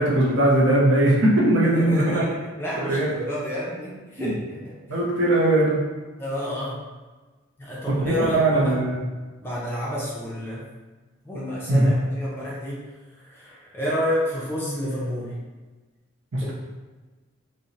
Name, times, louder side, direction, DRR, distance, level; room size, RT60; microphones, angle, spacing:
voice 1, 0.0-2.2 2.8-3.1 4.2-4.3 4.9-5.8 7.9-9.0 11.7-11.9 16.3-16.5, right 1 dB, 65° right, -5 dB, 0.6 m, -20 dB
voice 2, 1.6-4.8 6.2-6.8 7.6-8.8 9.4-10.6 11.2-12.8 13.2-15.3 16.4-16.5, equal, 10° left, -7 dB, 0.5 m, -30 dB
2.9 x 2.2 x 2.5 m, 1.3 s
head